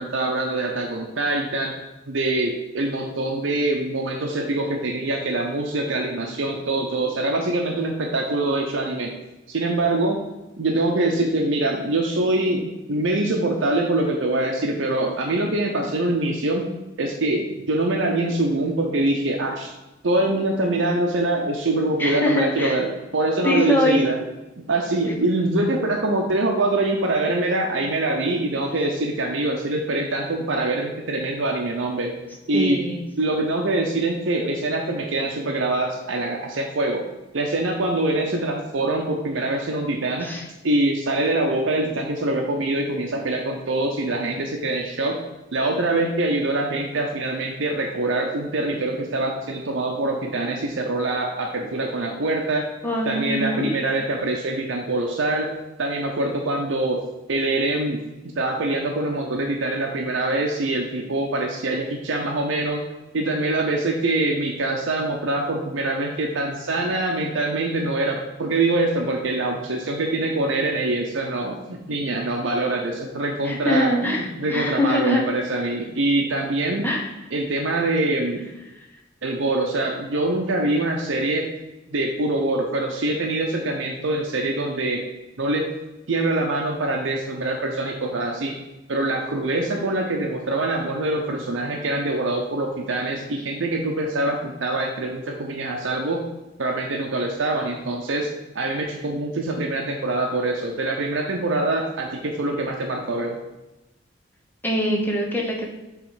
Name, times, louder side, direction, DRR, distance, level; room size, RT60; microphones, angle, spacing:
voice 1, 0.0-1.7 2.1-9.1 9.5-10.2 10.6-16.7 17.0-19.7 20.0-24.2 24.6-32.2 32.5-32.8 33.2-37.0 37.3-40.3 40.6-45.2 45.5-52.7 53.1-55.5 55.8-57.0 57.3-58.0 58.4-62.8 63.1-76.9 77.3-78.5 79.2-81.5 81.9-85.0 85.4-85.6 86.1-88.5 88.9-96.2 96.6-98.3 98.5-103.4, right 2 dB, 75° right, 1 dB, 0.7 m, -24 dB
voice 2, 22.0-22.8 23.4-24.0 32.5-33.1 40.2-40.4 52.8-54.0 73.4-75.2 76.8-77.1 104.6-105.6, left 1 dB, 10° left, -1 dB, 1.0 m, -23 dB
7.4 x 3.1 x 4.8 m, 1.0 s
head